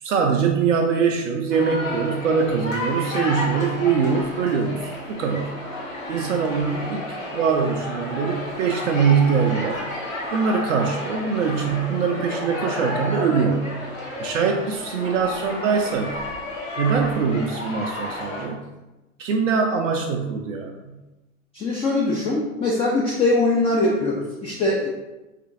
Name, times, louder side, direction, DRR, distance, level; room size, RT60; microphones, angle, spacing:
voice 1, 0.0-5.5 6.1-7.1 7.3-9.8 10.3-13.8 14.2-16.2 16.8-18.6 19.2-21.0, right 6 dB, 70° right, 2 dB, 0.5 m, -23 dB
sound 1, 1.5-18.5, left 1 dB, 85° left, 0.9 m, -31 dB
voice 2, 21.5-24.9, left 2 dB, 15° left, -2 dB, 0.4 m, -22 dB
4.2 x 2.5 x 2.6 m, 1.0 s
figure-of-eight pair, 80°, 38 cm